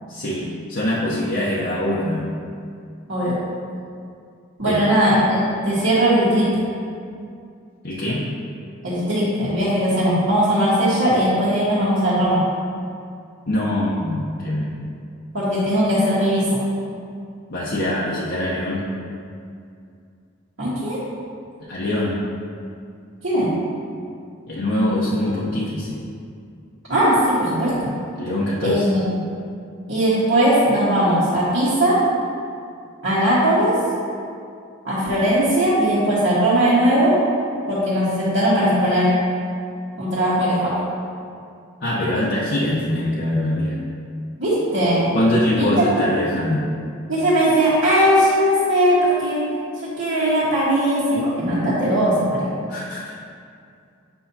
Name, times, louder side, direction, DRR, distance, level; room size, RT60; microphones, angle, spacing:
voice 1, 0.1-2.3 4.7-4.9 7.8-8.2 13.5-14.7 17.5-18.8 21.7-22.2 24.5-26.0 28.2-28.9 41.8-43.8 45.1-46.7 52.7-53.1, left 1 dB, 50° left, -7 dB, 0.7 m, -23 dB
voice 2, 4.6-6.5 8.8-12.4 15.3-16.6 20.6-21.0 23.2-23.5 26.9-27.9 28.6-29.1 29.9-32.0 33.0-33.8 34.8-37.2 37.7-39.2 39.9-40.8 44.4-45.2 45.6-45.9 47.1-49.5 49.8-52.5, equal, 60° right, -11 dB, 1.5 m, -19 dB
7.9 x 5.4 x 2.8 m, 2.4 s
head